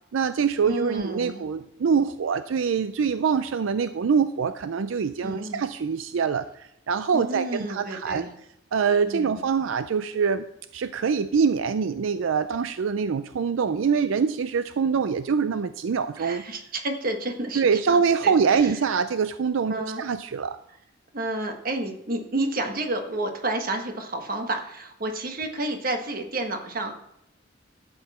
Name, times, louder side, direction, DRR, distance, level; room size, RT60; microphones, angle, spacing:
voice 1, 0.1-8.3 8.7-10.5 10.7-16.4 17.6-20.6, right 6 dB, 80° right, 12 dB, 0.4 m, -24 dB
voice 2, 0.6-1.4 5.2-5.6 7.1-8.3 9.0-9.4 16.2-18.7 19.7-20.0 21.1-26.9, right 2 dB, 45° right, 4 dB, 1.4 m, -30 dB
12.5 x 8.0 x 4.2 m, 0.79 s
head